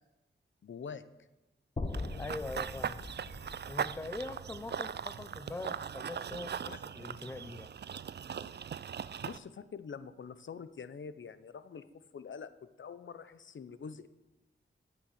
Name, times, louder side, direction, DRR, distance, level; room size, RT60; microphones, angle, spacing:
voice 1, 0.6-1.0 6.7-6.8 8.4-8.5 9.2-11.9 12.1-12.5 12.8-14.1, left 6 dB, 70° left, 13 dB, 0.7 m, -45 dB
sound 1, 1.8-5.9, left 2 dB, 30° left, 0.9 m, -42 dB
Run / Bird vocalization bird call bird song, 1.9-9.4, right 8 dB, 60° right, 0.4 m, -40 dB
voice 2, 2.2-3.0 3.7-7.7, left 2 dB, 10° left, 14 dB, 0.4 m, -42 dB
15.0 x 6.2 x 6.5 m, 1.0 s
wide cardioid pair, 95°, 20 cm